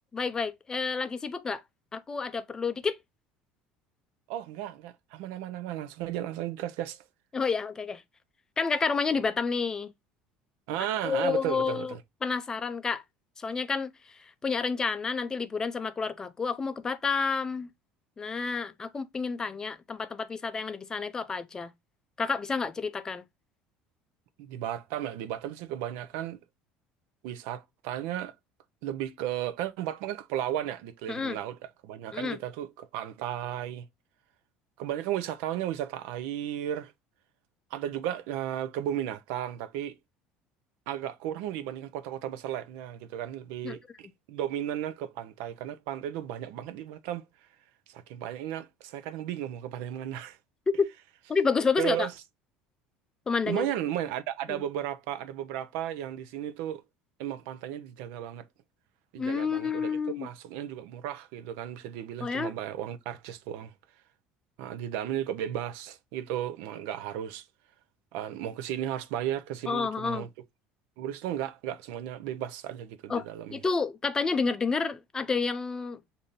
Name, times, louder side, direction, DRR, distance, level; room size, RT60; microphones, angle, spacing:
voice 1, 0.1-1.6 1.9-3.0 7.3-8.0 8.6-9.9 11.0-11.9 12.2-13.0 13.4-17.7 18.2-21.7 22.2-23.2 31.1-31.4 32.1-32.4 43.6-43.8 50.7-50.9 51.3-52.1 53.3-53.7 54.5-54.6 59.2-60.3 62.2-62.6 69.7-70.3 73.1-76.0, left 5 dB, 20° left, 0.4 m, -30 dB
voice 2, 4.3-7.0 10.7-12.0 24.4-26.4 27.2-28.3 28.8-31.6 31.8-33.9 34.8-36.9 37.7-40.0 40.9-47.2 47.9-50.4 51.8-52.1 53.5-56.8 57.2-58.5 59.1-63.7 64.6-67.4 68.1-70.3 71.0-73.6, right 11 dB, 80° right, 0.6 m, -34 dB
6.9 x 2.6 x 2.5 m
cardioid pair, 125°, 3 cm